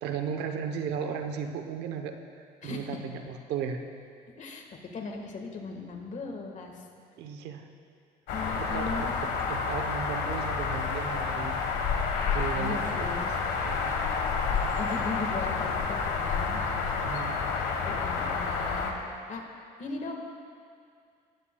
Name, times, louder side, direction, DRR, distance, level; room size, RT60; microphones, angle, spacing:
voice 1, 0.0-3.8 7.2-7.7 8.6-9.1 9.5-11.6 12.3-12.8 13.6-13.9 17.0-17.4, right 7 dB, 85° right, 6 dB, 0.9 m, -35 dB
voice 2, 2.6-3.0 4.4-6.8 8.3-9.1 12.5-13.3 14.8-16.6 17.8-19.4 19.8-20.1, left 4 dB, 45° left, 2 dB, 1.5 m, -38 dB
sound 1, 8.3-18.9, left 5 dB, 85° left, 1.4 m, -29 dB
19.5 x 9.4 x 2.3 m, 2.3 s
cardioid pair, 110°, 17 cm